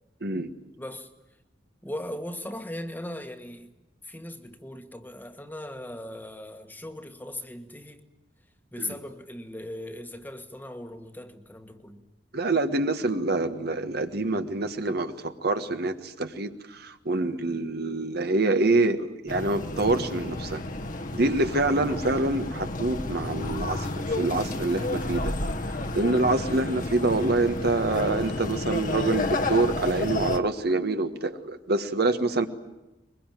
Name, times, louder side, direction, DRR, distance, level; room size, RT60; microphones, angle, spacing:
voice 1, 0.2-0.5 8.8-8.9 12.3-20.6 21.1-25.3 25.9-32.5, right 2 dB, 60° right, 1.5 m, -26 dB
voice 2, 0.8-1.1 1.8-3.7 4.0-8.1 8.7-12.0, left 1 dB, 10° left, 1.5 m, -38 dB
sound 1, 19.3-30.4, left 2 dB, 45° left, 1.3 m, -31 dB
22.5 x 22.0 x 9.2 m
head